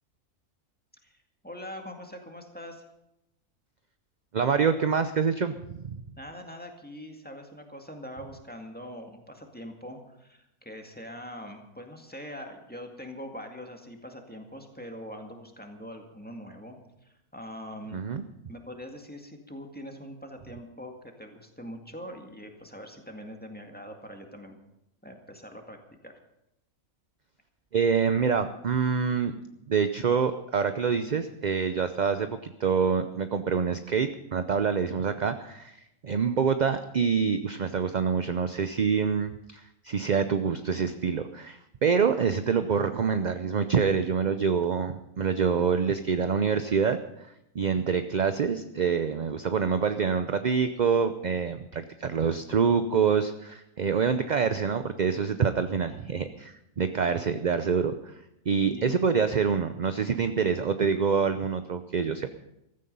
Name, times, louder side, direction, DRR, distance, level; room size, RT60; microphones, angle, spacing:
voice 1, 1.0-2.9 6.2-24.6 25.0-25.8 26.0-26.1 56.3-56.4 58.6-58.9, equal, 5° left, 3 dB, 2.0 m, -43 dB
voice 2, 4.3-6.0 17.9-18.2 27.7-29.3 29.7-35.8 36.0-47.0 47.5-58.1 58.5-62.3, right 6 dB, 45° right, 10 dB, 0.6 m, -26 dB
15.5 x 14.0 x 5.5 m, 0.86 s
omnidirectional pair, 1.4 m